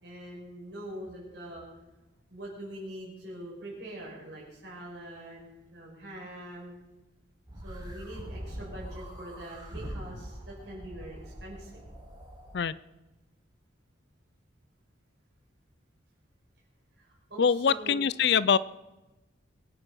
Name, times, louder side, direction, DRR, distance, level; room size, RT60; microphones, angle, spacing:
voice 1, 0.0-1.7 2.3-6.7 7.6-11.9 17.0-18.0, right 1 dB, 60° right, -4 dB, 5.4 m, -43 dB
sound 1, 7.5-12.6, equal, 20° right, 3.7 m, -43 dB
voice 2, 17.4-18.6, left 7 dB, 60° left, 19 dB, 0.4 m, -24 dB
22.0 x 8.9 x 5.8 m, 1.0 s
head